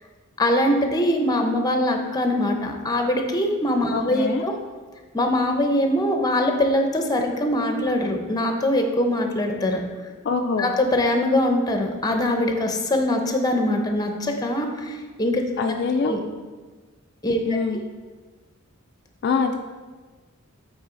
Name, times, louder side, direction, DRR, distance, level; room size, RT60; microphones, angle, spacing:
voice 1, 0.4-4.5 5.1-9.8 10.6-15.4 16.0-16.2 17.2-17.4, left 1 dB, 20° left, 4 dB, 0.7 m, -22 dB
voice 2, 3.9-4.4 10.2-10.7 15.6-16.1 17.4-17.8 19.2-19.6, left 4 dB, 50° left, 4 dB, 0.4 m, -24 dB
8.6 x 4.1 x 3.8 m, 1.4 s
head